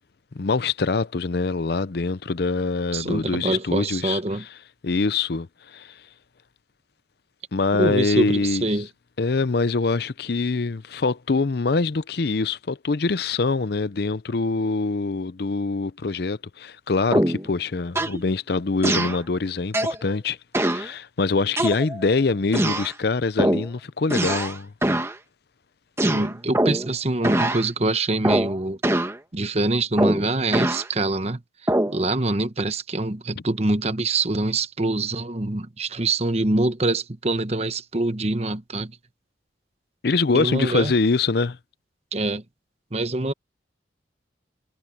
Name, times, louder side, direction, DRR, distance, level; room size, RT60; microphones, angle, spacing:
voice 1, 0.3-4.2 4.8-5.5 5.7-5.9 7.5-8.6 9.2-24.7 40.0-41.6, left 3 dB, 55° left, 0.6 m, -24 dB
voice 2, 2.9-4.4 7.7-8.9 26.0-28.8 29.3-31.4 31.9-39.0 40.3-40.9 42.1-42.4 42.9-43.3, right 2 dB, 35° right, 1.0 m, -25 dB
sound 1, 17.1-17.5 17.9-18.2 18.8-19.2 19.7-20.0 20.5-20.9 21.6-22.1 22.5-22.9 23.4-23.7 24.1-24.6 24.8-25.1 26.0-26.9 27.2-27.6 28.2-28.5 28.8-29.2 30.0-30.9 31.7-32.0, right 1 dB, 15° right, 1.2 m, -23 dB
head